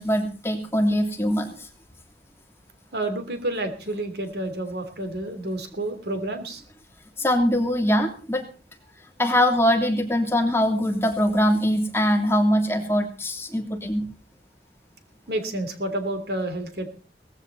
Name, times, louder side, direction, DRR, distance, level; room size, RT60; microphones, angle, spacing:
voice 1, 0.0-1.5 7.2-8.5 9.2-14.0, equal, 15° left, 3 dB, 3.0 m, -22 dB
voice 2, 2.9-6.6 15.3-16.9, right 1 dB, 65° right, 7 dB, 3.3 m, -29 dB
18.5 x 15.0 x 4.1 m, 0.38 s
head